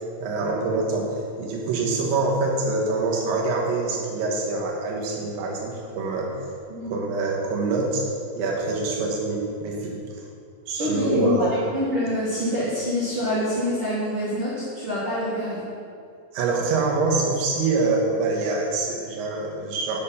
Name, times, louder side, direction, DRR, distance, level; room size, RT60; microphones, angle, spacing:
voice 1, 0.2-6.3 6.9-8.0 8.4-10.0 10.7-11.5 16.3-20.0, right 3 dB, 70° right, -2 dB, 2.9 m, -25 dB
voice 2, 10.8-15.6, left 1 dB, 45° right, -10 dB, 2.2 m, -26 dB
9.0 x 6.3 x 5.6 m, 2.3 s
omnidirectional pair, 4.5 m